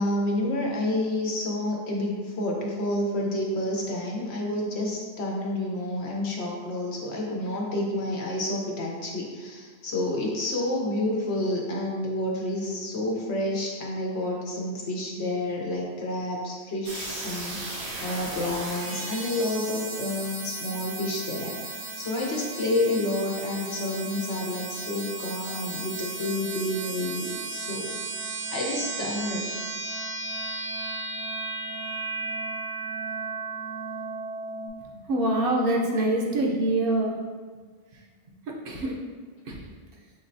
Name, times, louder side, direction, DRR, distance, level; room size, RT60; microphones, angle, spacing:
voice 1, 0.0-29.5, left 1 dB, 80° left, -1 dB, 1.1 m, -29 dB
sound 1, 16.9-34.7, right 3 dB, 80° right, 1.1 m, -35 dB
voice 2, 34.8-37.1 38.6-38.9 39.5-39.6, right 1 dB, 60° right, -1 dB, 0.8 m, -25 dB
6.0 x 3.2 x 2.6 m, 1.5 s
omnidirectional pair, 1.1 m